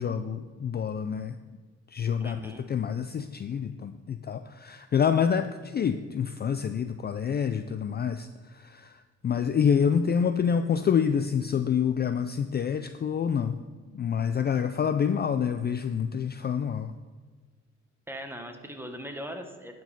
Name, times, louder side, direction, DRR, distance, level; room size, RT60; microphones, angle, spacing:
voice 1, 0.0-1.3 1.9-8.3 8.5-8.9 9.2-13.6 13.9-16.9, left 7 dB, 35° left, 9 dB, 0.4 m, -27 dB
voice 2, 2.2-2.7 18.1-19.8, equal, 10° right, 5 dB, 1.2 m, -39 dB
11.0 x 5.2 x 5.4 m, 1.4 s
cardioid pair, 90°, 30 cm